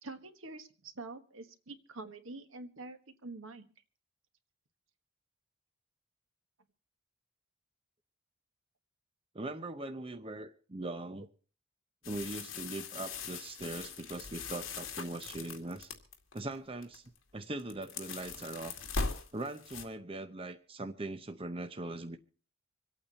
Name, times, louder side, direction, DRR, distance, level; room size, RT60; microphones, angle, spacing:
voice 1, 0.0-3.7, right 3 dB, 75° right, 8 dB, 1.4 m, -46 dB
voice 2, 9.3-11.3 12.0-15.9 16.3-18.8 19.3-22.2, right 2 dB, 25° right, 8 dB, 0.7 m, -41 dB
sound 1, 12.0-16.4 16.8-17.2 17.4-19.8, left 4 dB, 70° left, 2.1 m, -40 dB
26.5 x 8.8 x 4.1 m, 0.39 s
head